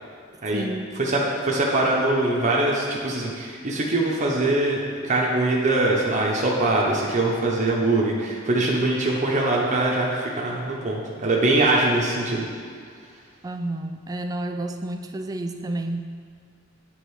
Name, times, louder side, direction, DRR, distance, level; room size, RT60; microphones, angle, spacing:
voice 1, 0.5-0.9 13.4-16.0, right 1 dB, 20° right, 6 dB, 0.3 m, -30 dB
voice 2, 1.0-12.5, right 2 dB, 35° right, -3 dB, 0.8 m, -22 dB
8.8 x 3.7 x 4.8 m, 2.1 s
head